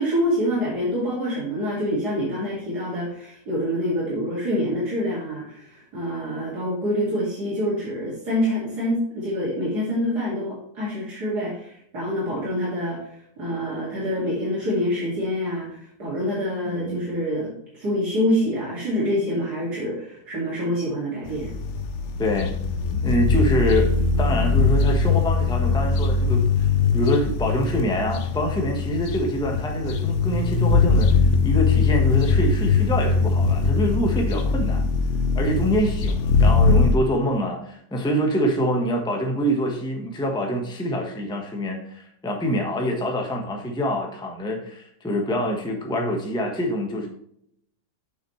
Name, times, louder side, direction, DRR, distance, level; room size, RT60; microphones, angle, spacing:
voice 1, 0.0-13.1 13.4-21.6, equal, 80° right, -7 dB, 3.1 m, -26 dB
voice 2, 16.6-17.0 22.2-22.5 22.9-34.8 35.3-47.1, equal, 5° left, 1 dB, 1.0 m, -25 dB
sound 1, 21.3-37.0, left 4 dB, 55° left, 1.0 m, -21 dB
7.3 x 6.8 x 3.2 m, 0.71 s
omnidirectional pair, 1.7 m